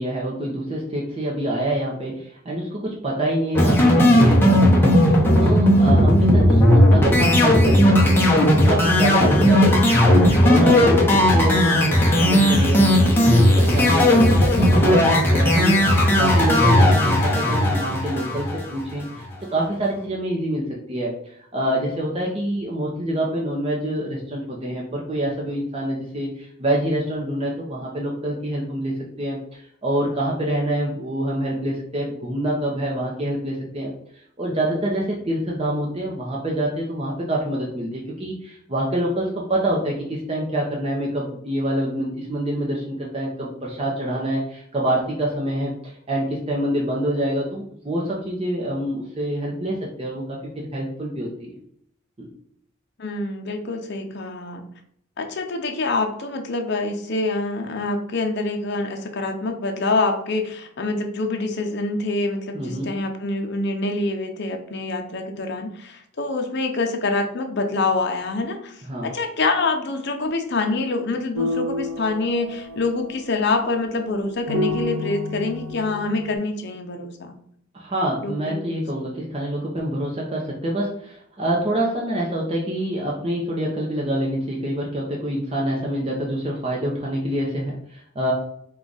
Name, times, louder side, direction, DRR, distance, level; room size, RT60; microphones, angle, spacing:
voice 1, 0.0-33.9 34.4-51.6 52.2-52.3 62.5-62.9 68.9-69.1 77.7-88.3, right 1 dB, 30° right, -3 dB, 0.7 m, -26 dB
sound 1, 3.5-18.9, left 1 dB, 10° left, 0.8 m, -16 dB
voice 2, 53.0-54.6 55.2-77.4 78.2-78.8, left 3 dB, 50° left, 4 dB, 0.6 m, -26 dB
sound 2, 71.3-76.4, left 2 dB, 85° right, 1.5 m, -29 dB
4.7 x 2.4 x 3.9 m, 0.68 s
head